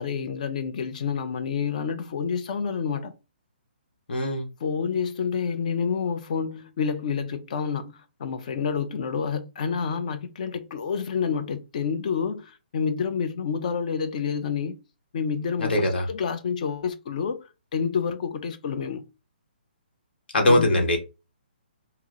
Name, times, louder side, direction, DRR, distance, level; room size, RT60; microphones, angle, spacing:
voice 1, 0.0-3.2 4.6-14.8 15.1-19.0 20.5-20.9, left 6 dB, 45° left, 0.5 m, -28 dB
voice 2, 4.1-4.5 15.6-16.0 20.3-21.0, left 1 dB, 70° left, 1.1 m, -21 dB
2.8 x 2.0 x 3.7 m
hypercardioid pair, 160°, 6 cm